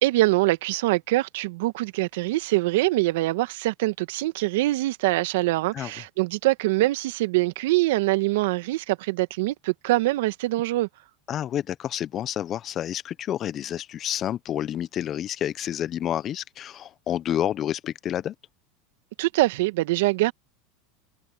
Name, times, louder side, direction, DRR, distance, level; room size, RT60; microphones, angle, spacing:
voice 1, 0.0-10.9 19.2-20.3, right 18 dB, 70° right, 1.6 m, -24 dB
voice 2, 11.3-18.3, left 11 dB, 40° left, 1.1 m, -29 dB
hypercardioid pair, 95°, 0 cm